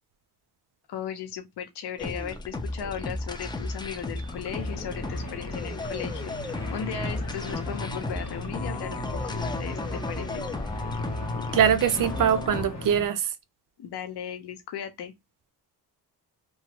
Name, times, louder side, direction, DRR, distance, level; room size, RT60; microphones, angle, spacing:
voice 1, 0.9-10.4 13.8-15.1, left 8 dB, 75° left, 0.8 m, -37 dB
sound 1, 2.0-12.7, left 2 dB, 10° left, 0.5 m, -34 dB
sound 2, 3.8-13.1, left 1 dB, 40° left, 1.0 m, -38 dB
voice 2, 11.5-13.3, right 8 dB, 55° right, 0.6 m, -22 dB
3.0 x 2.3 x 2.9 m
cardioid pair, 80°, 40 cm